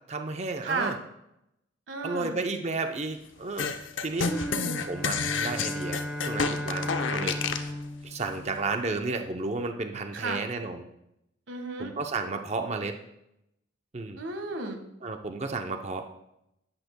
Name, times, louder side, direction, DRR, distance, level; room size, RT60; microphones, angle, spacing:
voice 1, 0.1-1.0 2.0-3.7 4.0-4.3 4.9-7.8 8.0-10.9 11.8-13.0 13.9-14.2 15.0-16.1, right 3 dB, 35° right, 6 dB, 0.7 m, -32 dB
voice 2, 0.6-0.9 1.9-2.4 4.2-4.7 10.1-10.4 11.5-11.9 14.2-14.8, right 3 dB, 85° right, 5 dB, 1.6 m, -33 dB
sound 1, 3.6-7.7, left 5 dB, 90° left, 0.7 m, -30 dB
sound 2, 4.2-8.9, left 1 dB, ahead, 2.6 m, -35 dB
11.0 x 10.5 x 2.2 m, 0.81 s
head